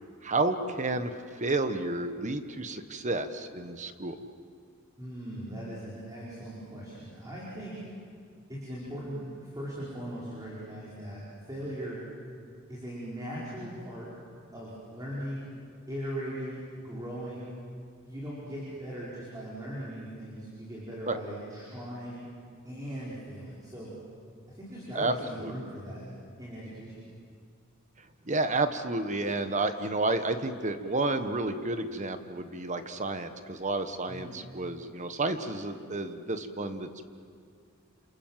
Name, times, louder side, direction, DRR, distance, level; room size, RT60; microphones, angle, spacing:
voice 1, 0.2-1.1 1.4-4.2 21.1-21.2 24.9-25.5 28.3-36.9, right 2 dB, 35° right, 9 dB, 1.4 m, -31 dB
voice 2, 5.0-7.8 8.5-12.0 12.7-14.1 14.5-15.4 15.9-16.6 16.8-17.5 18.0-22.2 22.6-23.9 24.5-26.0 26.4-27.0 34.1-34.4, equal, 15° right, -7 dB, 5.2 m, -39 dB
28.0 x 28.0 x 7.6 m, 2.2 s
head